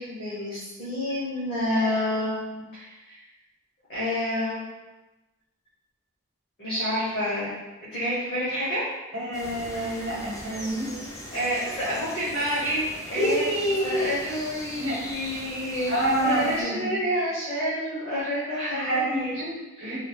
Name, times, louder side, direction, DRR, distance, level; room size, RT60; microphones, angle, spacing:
voice 1, 0.0-3.1 3.9-4.6 6.6-7.5 7.8-8.9 11.3-12.8 13.1-13.4 13.8-14.8 15.1-19.3 19.8-20.0, equal, 50° left, -11 dB, 1.0 m, -28 dB
voice 2, 9.1-10.9 13.1-14.1 14.8-15.0 15.9-16.9 18.7-20.0, right 1 dB, 55° right, -5 dB, 1.1 m, -27 dB
sound 1, 9.3-16.6, equal, 15° left, 0.3 m, -40 dB
3.4 x 3.4 x 2.3 m, 1.1 s
head